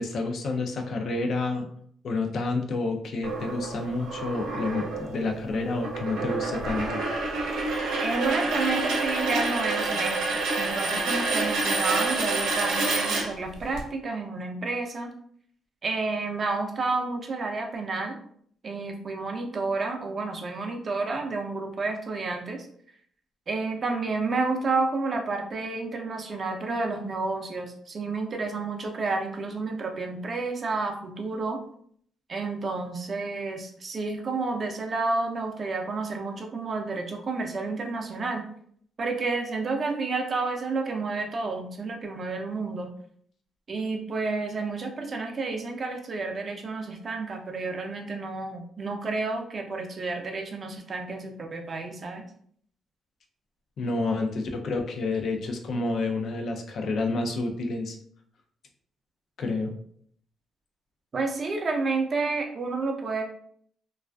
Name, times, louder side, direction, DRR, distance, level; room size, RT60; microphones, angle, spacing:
voice 1, 0.0-1.7 2.0-7.0 53.8-58.0 59.4-59.7, left 3 dB, 60° left, 3 dB, 0.4 m, -29 dB
sound 1, 3.2-13.8, right 3 dB, 90° right, 0.6 m, -28 dB
voice 2, 8.0-15.1 15.8-18.2 18.6-22.7 23.5-31.6 32.3-38.4 39.0-42.9 43.7-52.3 61.1-63.2, right 3 dB, 45° right, 4 dB, 0.5 m, -30 dB
2.4 x 2.3 x 2.2 m, 0.62 s
cardioid pair, 90°, 0 cm